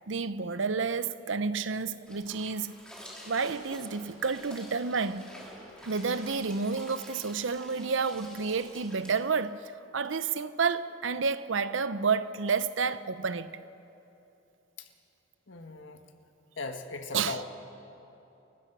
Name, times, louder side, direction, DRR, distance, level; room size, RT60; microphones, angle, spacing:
voice 1, 0.1-2.7 3.3-5.3 5.8-13.5 17.1-17.4, right 5 dB, 90° right, 0.7 m, -30 dB
sound 1, 2.0-9.1, equal, 5° left, 3.8 m, -49 dB
voice 2, 15.5-16.0 16.6-17.4, left 3 dB, 85° left, 1.5 m, -38 dB
28.5 x 15.0 x 6.1 m
head